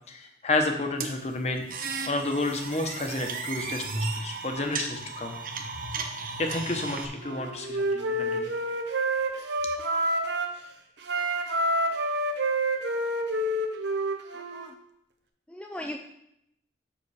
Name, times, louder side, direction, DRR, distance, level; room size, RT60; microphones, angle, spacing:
voice 1, 0.1-1.6 2.1-5.4 6.4-8.5, left 2 dB, 35° left, 4 dB, 1.0 m, -30 dB
sound 1, 1.0-7.1, right 4 dB, 50° right, 0.9 m, -34 dB
Wind instrument woodwind instrument, 7.2-10.6 11.0-14.7, right 1 dB, 80° right, 0.9 m, -28 dB
voice 2, 14.3-14.8 15.5-16.0, left 1 dB, 5° left, 3 dB, 0.4 m, -38 dB
7.1 x 6.4 x 4.8 m, 0.78 s
head